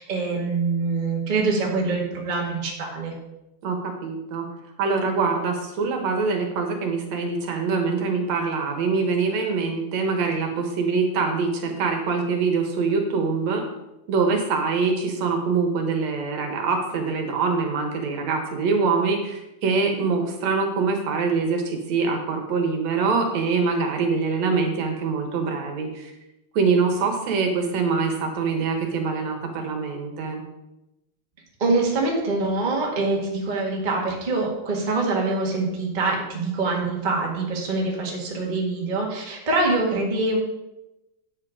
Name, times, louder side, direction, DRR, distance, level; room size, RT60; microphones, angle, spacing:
voice 1, 0.0-3.1 31.6-40.4, right 3 dB, 20° right, -2 dB, 1.3 m, -24 dB
voice 2, 4.0-4.5 4.8-13.6 14.1-26.1 26.5-30.4, right 4 dB, 70° right, 4 dB, 2.4 m, -24 dB
9.2 x 7.6 x 5.0 m, 0.94 s
omnidirectional pair, 3.4 m